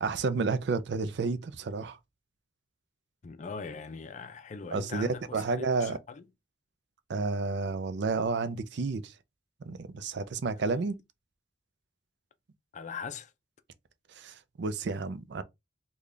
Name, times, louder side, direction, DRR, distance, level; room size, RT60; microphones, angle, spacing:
voice 1, 0.0-2.0 4.7-6.0 7.1-9.1 9.6-11.0 14.2-15.4, right 4 dB, 65° right, 0.4 m, -31 dB
voice 2, 3.2-6.3 10.6-10.8 12.7-13.3, left 5 dB, 40° left, 0.4 m, -41 dB
3.3 x 2.3 x 3.7 m
head